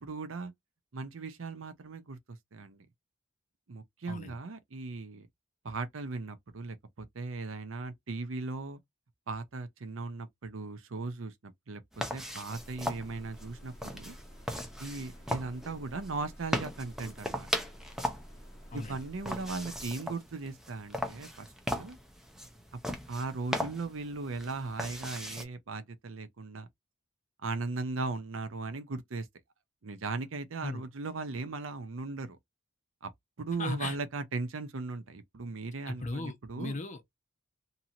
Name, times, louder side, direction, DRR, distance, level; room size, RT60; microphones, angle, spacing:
voice 1, 0.0-0.5 0.9-2.9 3.7-5.3 5.6-8.8 9.3-11.8 12.1-14.1 14.8-17.5 18.7-22.0 23.1-26.7 27.4-29.3 29.8-32.4 33.0-33.1 33.4-36.8, right 3 dB, 70° right, 0.6 m, -38 dB
sound 1, 11.9-25.4, equal, ahead, 0.5 m, -38 dB
sound 2, 12.5-19.9, equal, 15° left, 1.2 m, -51 dB
voice 2, 33.6-34.0 35.9-37.1, left 2 dB, 35° left, 0.7 m, -37 dB
2.8 x 2.7 x 2.5 m
head